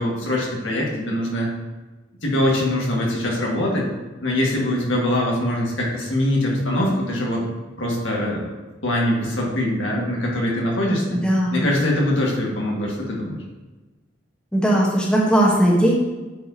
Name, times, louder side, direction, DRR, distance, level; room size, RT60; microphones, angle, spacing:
voice 1, 0.0-1.5 2.2-3.9 4.2-7.4 7.8-8.5 8.8-11.0 11.5-13.4, left 1 dB, 85° left, -2 dB, 1.7 m, -23 dB
voice 2, 11.1-11.8 14.5-15.9, right 1 dB, 5° left, -4 dB, 1.1 m, -18 dB
8.9 x 4.6 x 2.8 m, 1.2 s
head